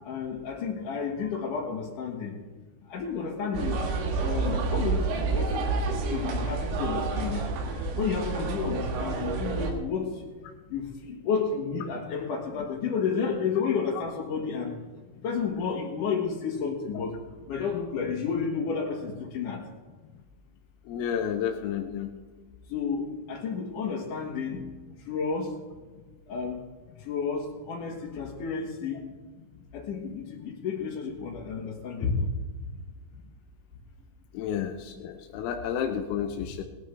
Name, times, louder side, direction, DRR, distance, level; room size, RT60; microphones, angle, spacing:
voice 1, 0.0-2.4 2.9-3.8 4.1-7.5 7.9-10.2 10.7-14.8 15.2-17.2 17.5-19.6 22.7-24.7 25.0-25.6 26.3-26.7 27.0-29.0 29.7-32.3 32.6-32.7, left 5 dB, 60° left, -4 dB, 2.2 m, -31 dB
sound 1, 3.5-9.7, right 4 dB, 75° right, 4.2 m, -29 dB
voice 2, 20.9-22.1 34.4-36.6, left 8 dB, 85° left, 4 dB, 3.6 m, -31 dB
19.5 x 12.5 x 3.4 m, 1.4 s
omnidirectional pair, 5.9 m